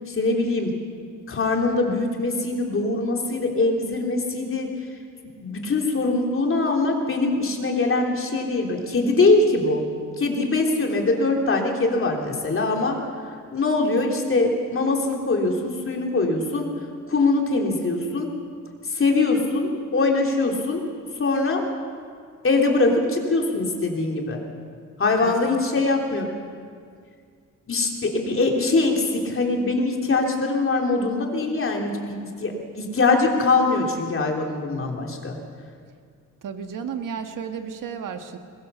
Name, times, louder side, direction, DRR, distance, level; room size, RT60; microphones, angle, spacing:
voice 1, 0.1-0.7 1.3-4.7 5.4-9.8 10.2-13.0 13.5-16.7 17.1-18.3 18.9-20.8 21.2-21.6 22.4-24.4 25.0-26.3 27.7-35.4, left 3 dB, 40° left, 1 dB, 3.4 m, -22 dB
voice 2, 25.2-25.6 36.4-38.4, right 7 dB, 75° right, 6 dB, 1.7 m, -33 dB
22.0 x 21.0 x 6.9 m, 2.1 s
wide cardioid pair, 125°, 32 cm